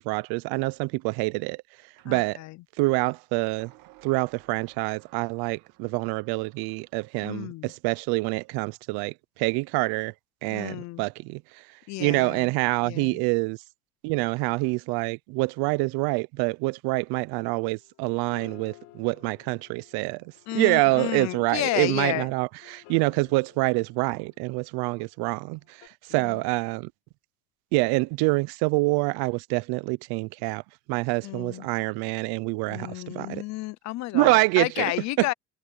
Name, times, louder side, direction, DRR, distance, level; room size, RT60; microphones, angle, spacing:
voice 1, 0.0-1.6 2.1-2.4 2.8-3.7 4.0-9.1 9.4-10.1 10.4-11.4 12.0-13.6 14.0-20.2 20.5-25.6 26.1-26.9 27.7-30.6 30.9-33.4 34.1-34.9 35.2-35.3, right 25 dB, 75° right, 0.6 m, -26 dB
voice 2, 2.0-2.6 7.2-7.7 10.5-11.0 11.9-12.5 12.8-13.2 20.5-22.3 26.1-26.4 31.2-31.7 32.7-35.3, left 18 dB, 45° left, 0.6 m, -32 dB
sound 1, 2.0-2.2 3.6-7.4, right 17 dB, 60° right, 1.9 m, -57 dB
sound 2, 17.6-25.1 25.8-25.9, left 20 dB, 85° left, 3.7 m, -53 dB
cardioid pair, 180°, 38 cm